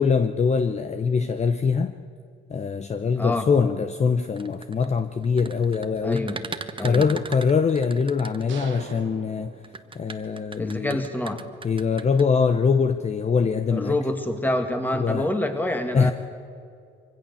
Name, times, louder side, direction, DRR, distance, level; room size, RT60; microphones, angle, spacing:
voice 1, 0.0-1.9 2.5-6.3 6.8-9.5 9.9-11.0 11.6-14.0 14.9-15.3 15.9-16.1, left 5 dB, 35° left, 10 dB, 0.8 m, -23 dB
voice 2, 3.2-3.5 6.0-6.4 6.8-7.1 10.6-11.4 13.7-16.1, left 1 dB, 10° left, 6 dB, 2.2 m, -26 dB
sound 1, 4.2-8.9 9.6-12.2, right 4 dB, 25° right, 1.0 m, -38 dB
sound 2, 8.5-10.3, right 8 dB, 75° right, 1.4 m, -42 dB
24.0 x 16.5 x 7.1 m, 2.4 s
cardioid pair, 90°, 20 cm